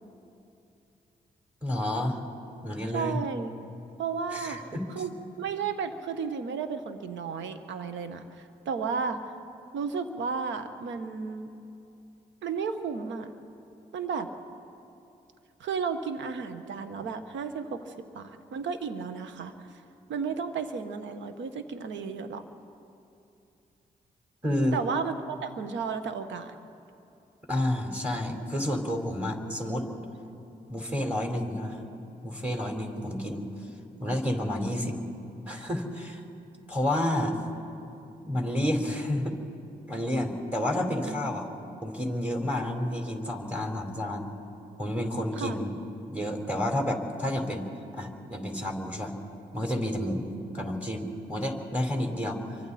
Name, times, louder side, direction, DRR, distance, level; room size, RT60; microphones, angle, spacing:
voice 1, 1.6-2.2 2.6-3.2 4.3-4.8 24.4-24.8 27.5-29.8 30.7-31.8 32.2-33.5 34.0-34.9 35.5-36.2 36.7-37.4 38.3-39.3 39.9-41.5 41.8-44.3 44.8-45.8 46.1-49.1 49.5-52.5, left 1 dB, 5° right, 2 dB, 4.5 m, -30 dB
voice 2, 2.9-3.5 4.0-4.6 4.9-5.1 5.4-9.3 9.7-11.5 12.4-13.3 13.9-14.3 15.6-19.7 20.1-22.4 24.7-26.5 40.7-41.2 45.4-45.6, right 5 dB, 75° right, 9 dB, 1.3 m, -33 dB
28.0 x 24.0 x 4.3 m, 2.7 s
hypercardioid pair, 40°, 19 cm